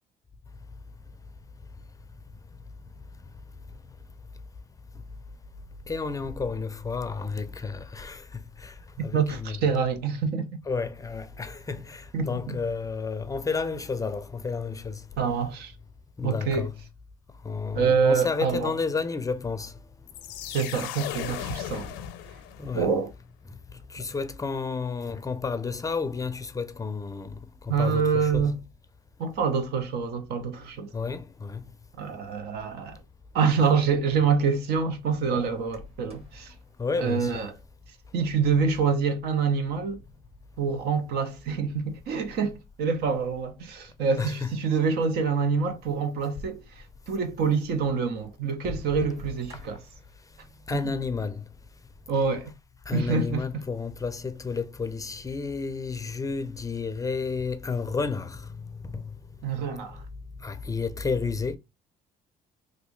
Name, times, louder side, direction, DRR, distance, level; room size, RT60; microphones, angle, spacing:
voice 1, 5.9-8.7 9.0-9.6 10.7-15.0 16.2-16.7 17.4-19.7 22.6-22.9 23.9-28.5 30.9-31.6 36.8-37.4 44.2-44.5 49.5-49.6 50.7-51.4 52.9-58.5 58.9-59.1 60.4-61.6, left 4 dB, 20° left, 0.4 m, -31 dB
voice 2, 9.1-10.5 12.1-12.6 15.2-15.7 16.2-16.7 17.7-18.7 20.5-21.9 22.7-23.1 27.7-28.6 29.2-30.9 32.0-33.0 33.3-36.5 37.0-37.6 38.1-40.0 40.6-49.8 50.7-50.9 52.1-52.5 52.9-53.7 59.4-60.0, right 5 dB, 75° right, 0.8 m, -26 dB
sound 1, 20.1-22.9, left 10 dB, 90° left, 0.6 m, -36 dB
sound 2, 35.7-37.9 39.0-39.1 39.7-40.8 41.5-42.3 43.1-43.2 43.4-43.5 44.1-44.2 44.5-45.2 46.9-47.0 47.6-47.7 48.3-50.2, left 2 dB, 35° right, 1.5 m, -45 dB
3.1 x 2.6 x 3.0 m
cardioid pair, 100°, 17 cm